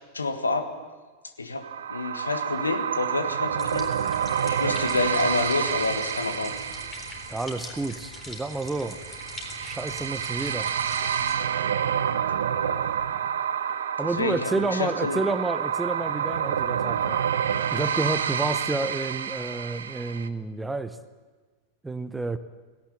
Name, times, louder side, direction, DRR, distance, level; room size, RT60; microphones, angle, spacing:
voice 1, 0.1-0.7 1.4-3.9 4.4-6.6 12.6-12.9 14.1-15.2, left 3 dB, 75° left, 8 dB, 1.6 m, -28 dB
sound 1, 1.6-20.3, right 8 dB, 65° right, 0.8 m, -29 dB
sound 2, 3.6-11.4, left 2 dB, 20° left, 4.0 m, -43 dB
voice 2, 7.3-9.0 9.6-10.7 14.0-17.3 17.7-21.0 21.8-22.4, right 2 dB, 10° right, 12 dB, 0.9 m, -30 dB
18.0 x 17.5 x 8.6 m, 1.3 s
figure-of-eight pair, 90°, 0 cm